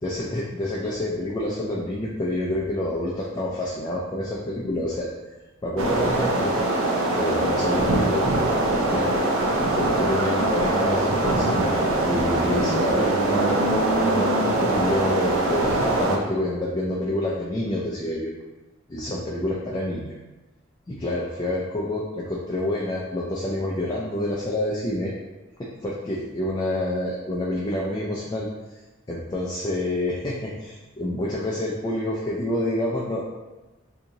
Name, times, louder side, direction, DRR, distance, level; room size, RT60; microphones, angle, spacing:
voice 1, 0.0-5.3 5.6-6.6 7.2-8.3 8.9-9.1 9.7-11.6 12.1-18.3 18.9-20.1 20.9-25.1 25.6-28.8 29.1-33.2, left 1 dB, 20° left, -4 dB, 0.4 m, -28 dB
sound 1, 5.8-16.2, right 2 dB, 85° right, 0.5 m, -22 dB
2.8 x 2.6 x 3.7 m, 1.1 s
head